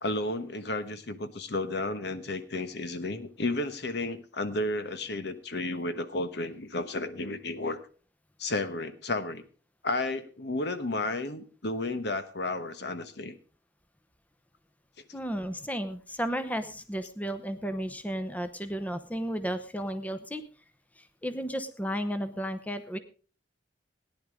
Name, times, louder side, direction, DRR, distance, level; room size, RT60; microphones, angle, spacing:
voice 1, 0.0-7.8 8.4-9.4 9.8-13.4, left 2 dB, 65° left, 11 dB, 1.1 m, -32 dB
voice 2, 15.1-20.4 21.0-23.0, equal, 10° left, 10 dB, 0.8 m, -33 dB
17.5 x 10.5 x 3.7 m, 0.38 s
head